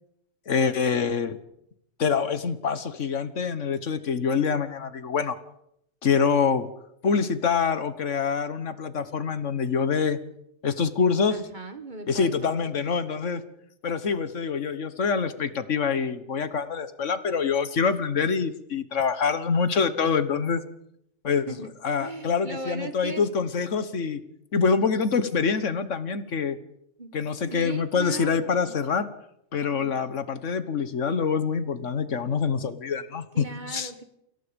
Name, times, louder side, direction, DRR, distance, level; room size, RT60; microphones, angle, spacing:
voice 1, 0.5-1.4 2.0-5.4 6.0-6.7 7.0-10.2 10.6-11.4 12.1-13.4 13.8-20.6 21.2-21.5 21.8-24.2 24.5-26.6 27.1-29.1 29.5-33.9, left 5 dB, 80° left, 13 dB, 1.6 m, -25 dB
voice 2, 11.3-12.3 12.7-12.8 21.5-21.7 22.0-23.2 27.0-27.2 27.5-28.8 29.8-30.0 33.3-34.0, right 2 dB, 40° right, 9 dB, 1.9 m, -38 dB
29.5 x 17.0 x 5.2 m, 0.77 s
omnidirectional pair, 1.3 m